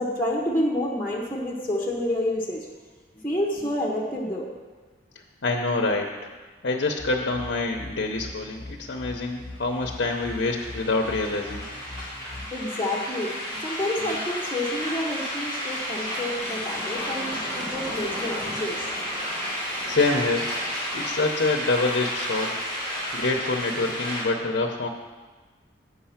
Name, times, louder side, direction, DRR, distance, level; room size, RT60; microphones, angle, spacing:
voice 1, 0.0-2.7 3.2-4.5 12.5-18.8, left 1 dB, 10° left, -3 dB, 0.9 m, -29 dB
voice 2, 5.4-6.1 6.6-11.7 19.9-20.5 20.9-22.5 23.1-24.9, left 3 dB, 70° left, 1 dB, 0.7 m, -26 dB
sound 1, 7.0-12.5, left 2 dB, 60° right, 2.0 m, -42 dB
sound 2, 9.7-24.2, equal, 30° right, 2.7 m, -32 dB
8.1 x 5.6 x 5.7 m, 1.3 s
head